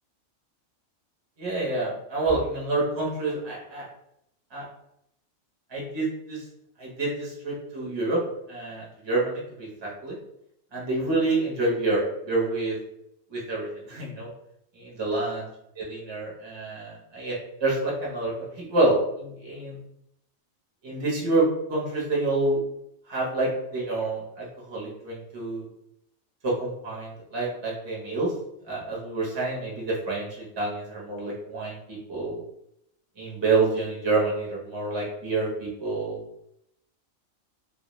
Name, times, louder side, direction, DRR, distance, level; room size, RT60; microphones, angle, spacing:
voice 1, 1.4-3.9 4.5-4.7 5.7-6.4 6.8-8.2 8.5-10.2 10.7-12.8 13.3-14.3 14.7-15.4 15.8-19.8 20.8-22.6 23.1-25.7 26.4-28.3 28.7-32.4 33.2-36.2, right 2 dB, 30° right, -4 dB, 0.5 m, -28 dB
2.2 x 2.1 x 2.9 m, 0.79 s
omnidirectional pair, 1.4 m